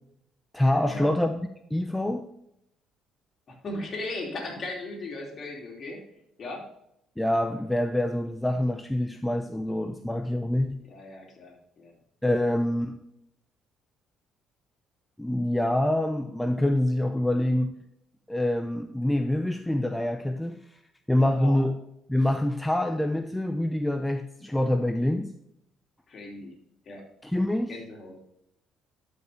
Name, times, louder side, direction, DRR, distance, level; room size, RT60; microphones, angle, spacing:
voice 1, 0.5-2.3 7.2-10.8 12.2-13.0 15.2-17.7 18.3-20.6 21.1-21.8 22.1-25.3 27.2-27.7, left 1 dB, 5° left, 6 dB, 0.7 m, -26 dB
voice 2, 3.5-6.0 6.4-6.6 10.9-11.9 21.3-21.6 26.1-26.5 26.9-27.0 27.7-28.1, left 2 dB, 45° left, 0 dB, 2.8 m, -37 dB
12.0 x 5.3 x 3.4 m, 0.77 s
hypercardioid pair, 55°, 0 cm